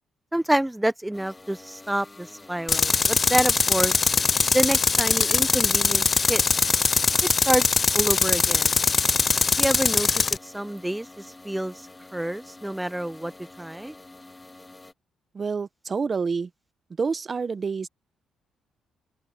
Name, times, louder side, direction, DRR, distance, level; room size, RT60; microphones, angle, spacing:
voice 1, 0.3-4.0 4.5-6.4 7.2-7.6 7.9-8.7 9.6-11.9 12.1-13.3 13.6-13.9, right 1 dB, 5° right, 0.8 m, -27 dB
sound 1, 1.1-14.9, left 2 dB, 20° left, 3.1 m, -48 dB
Tools, 2.7-10.4, left 4 dB, 35° left, 0.5 m, -21 dB
voice 2, 15.3-16.5 17.0-17.9, right 5 dB, 35° right, 1.0 m, -28 dB
open air
cardioid pair, 90°, 0 cm